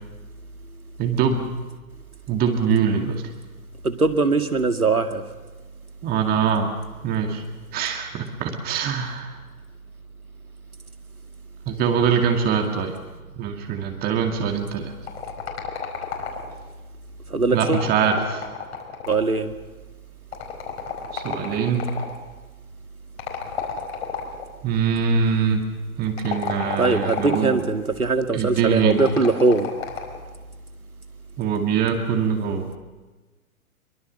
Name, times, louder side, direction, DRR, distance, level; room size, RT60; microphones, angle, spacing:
voice 1, 1.0-1.5 2.3-3.2 6.0-6.7 7.0-7.4 7.7-9.3 11.7-13.0 13.4-14.9 17.5-18.4 21.1-21.9 24.6-25.7 26.0-27.6 28.3-29.0 31.4-32.7, right 6 dB, 20° right, 4 dB, 2.3 m, -23 dB
voice 2, 3.8-5.2 17.3-17.9 19.1-19.5 26.8-29.7, right 3 dB, 80° right, 7 dB, 2.2 m, -21 dB
sound 1, 15.1-16.7 17.5-19.4 20.3-22.2 23.2-24.5 26.1-27.6 28.9-30.2, left 7 dB, 50° left, 4.8 m, -31 dB
25.5 x 23.0 x 6.6 m, 1.3 s
figure-of-eight pair, 115°, 43 cm